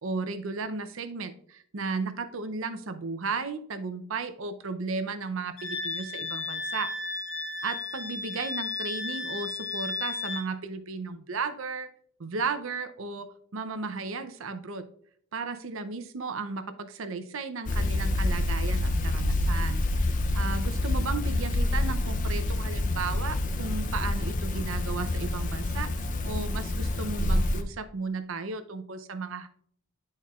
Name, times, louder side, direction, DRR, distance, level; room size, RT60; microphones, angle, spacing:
voice 1, 0.0-6.9 7.6-11.9 12.2-14.8 15.3-19.8 20.3-25.9 26.2-29.5, right 4 dB, 70° right, 10 dB, 0.6 m, -34 dB
Wind instrument woodwind instrument, 5.6-10.5, left 3 dB, 70° left, 1.6 m, -34 dB
sound 1, 17.7-27.6, left 1 dB, 35° left, 0.5 m, -27 dB
11.0 x 4.2 x 2.4 m, 0.64 s
head